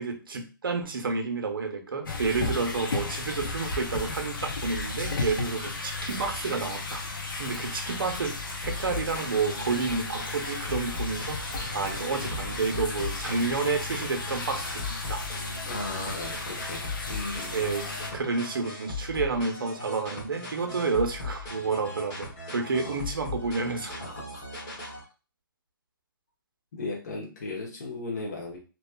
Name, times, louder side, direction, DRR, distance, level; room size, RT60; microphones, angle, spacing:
voice 1, 0.0-7.0 7.4-11.5 11.7-15.2 17.5-23.9, right 4 dB, 70° right, 4 dB, 0.7 m, -30 dB
sound 1, 2.0-18.1, left 3 dB, 65° left, 0.8 m, -34 dB
sound 2, 8.6-25.0, left 3 dB, 25° left, 1.1 m, -38 dB
voice 2, 15.6-17.8 22.8-23.0 24.0-24.4 26.7-28.6, left 2 dB, 45° left, -2 dB, 1.0 m, -36 dB
2.9 x 2.3 x 2.3 m, 0.33 s
hypercardioid pair, 150°, 12 cm